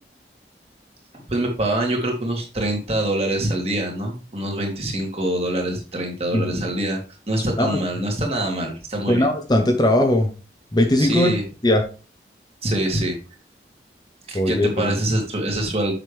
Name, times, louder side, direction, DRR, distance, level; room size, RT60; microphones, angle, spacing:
voice 1, 1.3-7.0 7.3-9.3 11.0-11.4 12.6-13.2 14.3-15.9, right 1 dB, 35° right, 1 dB, 2.6 m, -24 dB
voice 2, 9.1-10.3 10.7-11.3 11.6-11.8 14.3-15.0, left 1 dB, 25° left, 4 dB, 1.0 m, -19 dB
7.6 x 6.7 x 3.4 m, 0.33 s
head